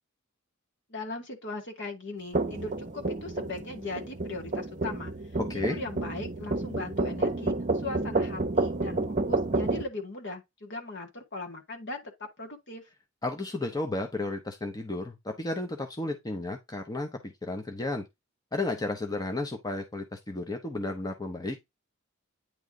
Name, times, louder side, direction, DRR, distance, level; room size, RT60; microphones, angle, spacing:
voice 1, 0.9-5.1 5.5-12.8, left 2 dB, 55° left, 1.9 m, -39 dB
sound 1, 2.3-9.8, right 2 dB, 35° right, 0.8 m, -30 dB
voice 2, 5.4-5.8 13.2-18.0 18.5-21.6, left 2 dB, 20° left, 0.8 m, -33 dB
9.3 x 3.3 x 3.6 m
head